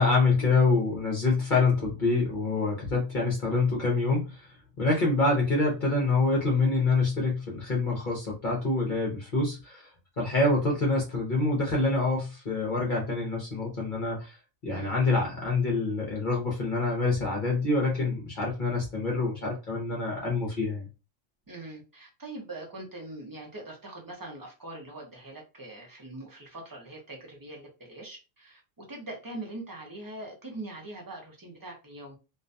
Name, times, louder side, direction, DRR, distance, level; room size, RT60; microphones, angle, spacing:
voice 1, 0.0-9.9 10.2-14.4 14.6-20.9, left 3 dB, 45° left, -2 dB, 0.8 m, -26 dB
voice 2, 14.7-15.0 21.5-32.1, right 2 dB, 25° right, -1 dB, 0.4 m, -42 dB
2.5 x 2.2 x 2.5 m, 0.29 s
omnidirectional pair, 1.3 m